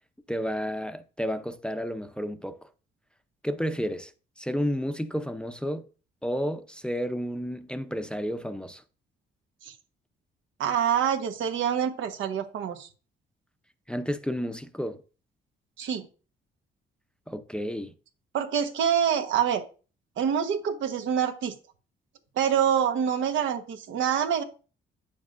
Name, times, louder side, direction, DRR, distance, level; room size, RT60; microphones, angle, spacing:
voice 1, 0.3-2.7 3.4-4.1 4.4-5.9 6.2-8.8 13.9-15.0 17.3-17.9, equal, 5° left, 0.6 m, -31 dB
voice 2, 10.6-12.9 15.8-16.0 18.3-19.6 20.2-21.6 22.4-24.4, right 8 dB, 75° right, 1.2 m, -26 dB
8.8 x 7.2 x 2.5 m
cardioid pair, 90°, 20 cm